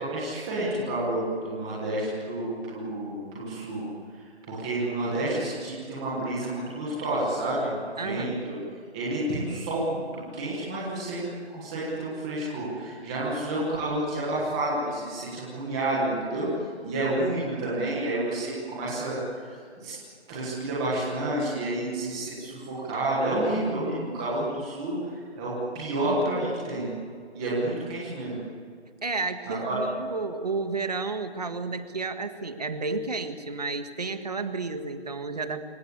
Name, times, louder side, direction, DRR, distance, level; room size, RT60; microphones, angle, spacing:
voice 1, 0.0-3.8 4.5-8.6 8.9-10.0 10.3-11.3 11.5-16.5 16.8-19.9 20.3-25.0 25.4-26.9 27.3-28.4 29.5-29.8, right 1 dB, 5° right, -8 dB, 1.3 m, -29 dB
voice 2, 8.0-8.4 29.0-35.6, right 3 dB, 35° right, 8 dB, 1.8 m, -31 dB
26.0 x 24.5 x 8.3 m, 2.2 s
figure-of-eight pair, 175°, 34 cm